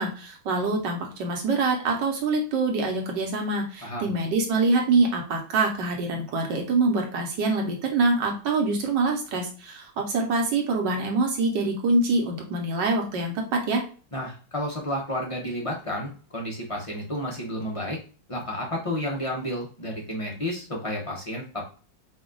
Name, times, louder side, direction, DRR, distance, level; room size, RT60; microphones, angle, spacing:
voice 1, 0.0-13.8, right 3 dB, 70° right, 2 dB, 1.4 m, -25 dB
voice 2, 14.1-18.0 18.3-21.7, left 1 dB, 40° left, -3 dB, 0.4 m, -31 dB
5.0 x 2.3 x 3.8 m, 0.38 s
omnidirectional pair, 2.1 m